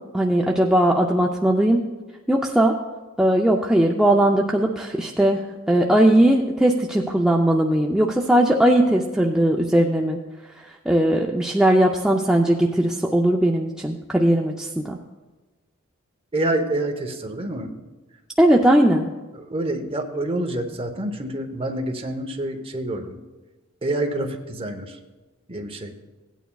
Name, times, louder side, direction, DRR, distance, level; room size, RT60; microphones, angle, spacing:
voice 1, 0.1-1.9 2.3-2.8 3.2-10.2 10.6-15.0 18.4-19.1, right 1 dB, 5° right, -1 dB, 0.4 m, -19 dB
voice 2, 16.3-17.7 19.3-23.2 23.8-25.0 25.5-25.9, right 1 dB, 25° right, 3 dB, 0.8 m, -27 dB
16.5 x 9.2 x 2.3 m, 1.2 s
head